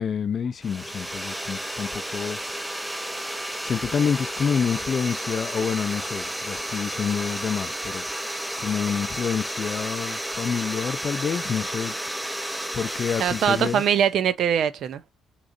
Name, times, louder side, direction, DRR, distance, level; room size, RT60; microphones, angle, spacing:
voice 1, 0.0-2.4 3.6-8.1 8.6-11.9 12.7-13.8, left 7 dB, 50° left, 0.4 m, -28 dB
sound 1, 0.6-14.1, right 1 dB, 5° right, 0.5 m, -32 dB
voice 2, 13.2-15.1, right 8 dB, 70° right, 0.5 m, -22 dB
3.6 x 3.1 x 2.5 m
cardioid pair, 90°, 0 cm